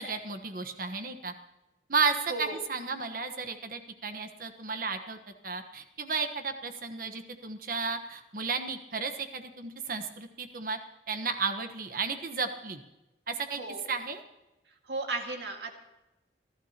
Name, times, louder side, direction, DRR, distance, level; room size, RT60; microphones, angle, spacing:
voice 1, 0.0-1.3 1.9-5.2 5.4-10.8 11.1-12.8 13.3-13.6 13.9-14.2, right 4 dB, 50° right, 8 dB, 1.2 m, -33 dB
voice 2, 13.6-13.9 14.9-15.8, right 2 dB, 70° right, 3 dB, 2.0 m, -35 dB
29.0 x 12.0 x 2.9 m, 0.98 s
head